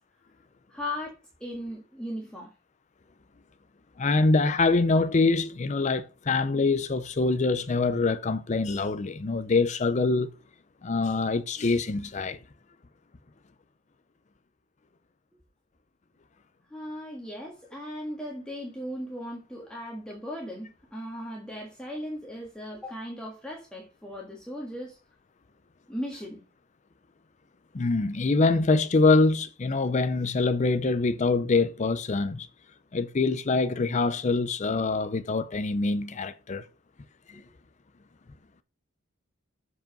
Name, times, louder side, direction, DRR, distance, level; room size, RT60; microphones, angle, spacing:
voice 1, 0.7-2.5 16.7-25.0 25.9-26.4 37.3-37.5, equal, 5° left, 1.7 m, -37 dB
voice 2, 4.0-10.3 10.8-12.4 27.7-32.5 32.9-36.7 37.3-37.4, left 3 dB, 35° left, 0.5 m, -24 dB
7.8 x 4.9 x 5.3 m
head